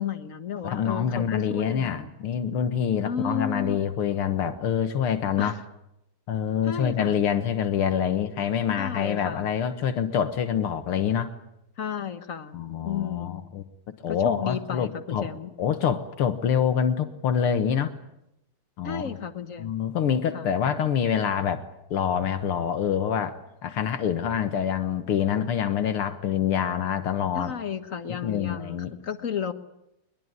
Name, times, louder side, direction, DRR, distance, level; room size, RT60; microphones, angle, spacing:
voice 1, 0.0-2.2 3.0-3.8 5.4-5.6 6.7-7.2 8.8-9.5 11.8-12.6 12.8-13.5 14.1-15.5 18.8-19.7 20.3-20.5 27.3-29.5, left 7 dB, 40° left, 10 dB, 1.6 m, -33 dB
voice 2, 0.6-5.5 6.3-11.3 12.5-13.6 14.0-15.3 15.6-17.9 18.8-19.1 19.6-23.4 23.6-27.6 28.1-28.9, left 8 dB, 80° left, 10 dB, 2.2 m, -26 dB
23.0 x 22.0 x 9.6 m, 0.84 s
omnidirectional pair, 2.4 m